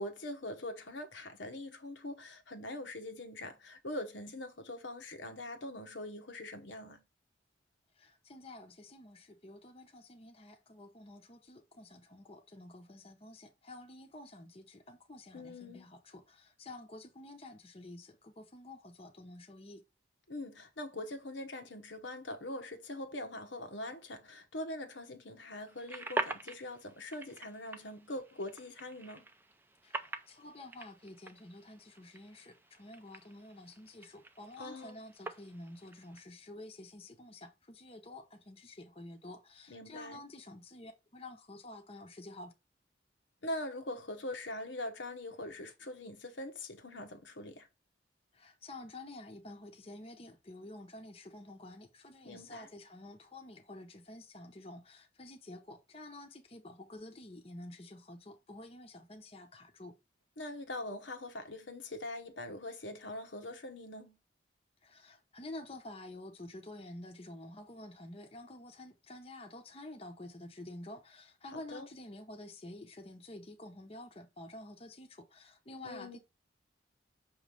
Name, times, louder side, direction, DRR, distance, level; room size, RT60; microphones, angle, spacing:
voice 1, 0.0-7.0 15.3-15.9 20.3-29.2 34.6-35.0 39.7-40.2 43.4-47.7 52.2-52.7 60.4-64.1 71.5-71.9 75.8-76.2, left 1 dB, 80° left, 1.1 m, -43 dB
voice 2, 8.0-19.8 29.8-42.5 48.3-59.9 64.8-76.2, left 1 dB, 30° left, 0.8 m, -50 dB
sound 1, 25.7-36.2, right 2 dB, 10° right, 0.5 m, -44 dB
6.4 x 3.1 x 5.1 m
head